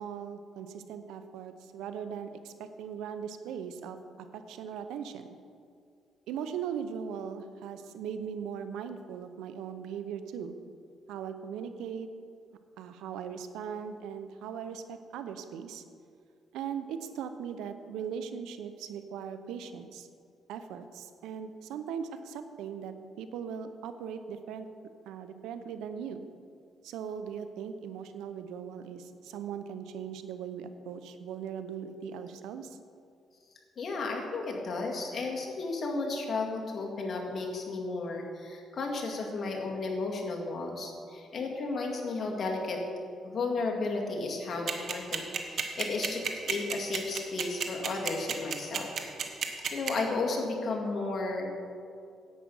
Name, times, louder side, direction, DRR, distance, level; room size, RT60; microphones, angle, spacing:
voice 1, 0.0-5.4 6.3-10.6 11.1-12.1 12.8-15.8 16.5-20.1 20.5-24.7 25.1-26.3 26.8-32.8, right 7 dB, 90° right, 10 dB, 0.7 m, -39 dB
voice 2, 33.8-42.8 43.2-45.2 45.5-48.9 49.7-51.6, left 3 dB, 50° left, 0 dB, 2.1 m, -33 dB
sound 1, 44.7-49.9, right 8 dB, 60° right, 1.2 m, -30 dB
10.5 x 8.7 x 5.5 m, 2.3 s
cardioid pair, 90°, 0 cm